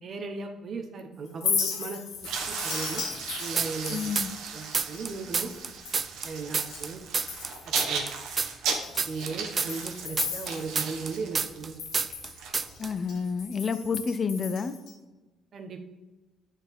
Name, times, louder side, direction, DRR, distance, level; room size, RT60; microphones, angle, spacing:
voice 1, 0.0-3.0 3.4-4.0 4.5-5.5 6.2-7.0 7.6-8.0 9.0-11.8 15.5-15.8, right 4 dB, 45° right, 4 dB, 1.0 m, -37 dB
Chink clink, 1.3-6.9 7.2-7.8 8.2-8.3 8.8-11.2 11.4-14.9, left 6 dB, 75° left, 1.2 m, -36 dB
sound 1, 2.2-13.2, right 5 dB, 80° right, 1.2 m, -36 dB
sound 2, 3.6-4.5 4.7-7.5 7.8-11.7 11.9-12.3 12.5-12.9, right 5 dB, 30° right, 0.3 m, -28 dB
voice 2, 3.9-4.3 12.8-14.7, left 5 dB, 35° left, 12 dB, 0.5 m, -29 dB
8.6 x 4.6 x 3.5 m, 1.2 s
cardioid pair, 115°, 0 cm